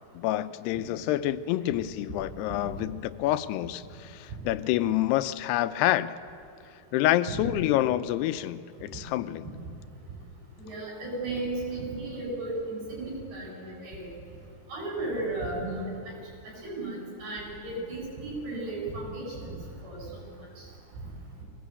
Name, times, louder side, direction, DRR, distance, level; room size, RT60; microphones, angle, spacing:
voice 1, 0.1-6.2 6.9-9.5, left 14 dB, 85° left, 13 dB, 2.8 m, -27 dB
voice 2, 10.6-14.1 14.7-15.8 16.6-19.3 19.8-20.0, right 2 dB, 90° right, -3 dB, 10.0 m, -34 dB
23.5 x 19.0 x 8.3 m, 2.4 s
omnidirectional pair, 4.6 m